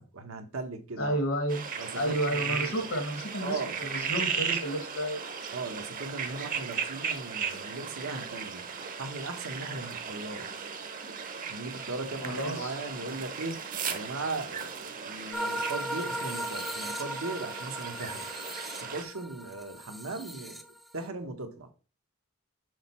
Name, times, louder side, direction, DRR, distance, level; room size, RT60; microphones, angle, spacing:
voice 1, 0.0-1.2 1.8-2.8 3.4-3.8 5.5-8.6 9.0-10.5 11.5-18.3 18.8-20.6 20.9-21.7, right 3 dB, 80° right, 1.1 m, -38 dB
voice 2, 1.0-1.6 2.0-5.2 12.2-12.7, right 1 dB, 75° left, 1.8 m, -31 dB
sound 1, 1.5-19.0, right 6 dB, 40° right, 0.8 m, -36 dB
sound 2, 15.3-21.1, equal, ahead, 0.5 m, -37 dB
6.4 x 4.2 x 4.3 m
head